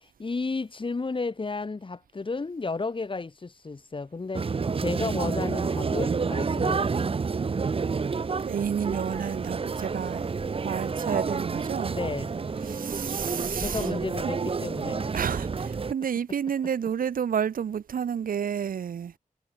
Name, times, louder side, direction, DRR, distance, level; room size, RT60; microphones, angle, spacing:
voice 1, 0.0-4.5 4.8-7.0 11.8-12.3 13.6-15.1, left 3 dB, 35° left, 2.0 m, -33 dB
sound 1, 4.3-15.9, right 5 dB, 40° right, 0.8 m, -29 dB
voice 2, 8.4-10.3 10.6-12.0 12.7-13.9 14.4-14.5 15.1-19.1, right 8 dB, 90° right, 1.8 m, -30 dB
sound 2, 8.8-15.0, right 1 dB, 5° right, 6.4 m, -48 dB
cardioid pair, 75°, 14 cm